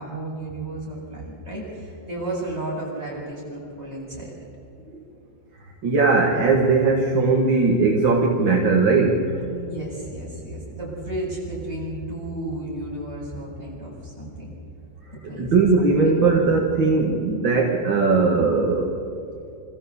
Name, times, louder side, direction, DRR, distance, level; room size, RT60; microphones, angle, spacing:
voice 1, 0.0-4.3 9.4-14.5 15.2-15.5 16.0-16.6, right 1 dB, 30° right, -5 dB, 8.2 m, -33 dB
voice 2, 5.8-9.4 15.4-19.0, right 4 dB, 70° right, 0 dB, 2.5 m, -19 dB
26.5 x 14.5 x 8.4 m, 2.7 s
omnidirectional pair, 2.2 m